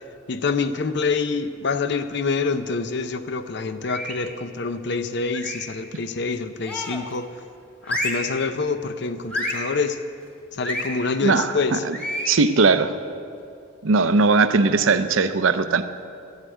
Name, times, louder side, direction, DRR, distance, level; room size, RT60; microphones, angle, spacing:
voice 1, 0.3-7.3 7.9-10.0 10.5-11.8, left 4 dB, 55° left, 11 dB, 0.6 m, -26 dB
sound 1, 3.8-4.3 5.3-5.8 6.6-7.1 7.8-8.3 9.3-9.7 10.6-10.9 11.9-12.4, left 1 dB, 5° left, 1.5 m, -29 dB
voice 2, 11.2-12.0 12.3-12.9 13.8-15.8, right 4 dB, 75° right, 11 dB, 0.6 m, -19 dB
11.5 x 8.2 x 9.1 m, 2.4 s
head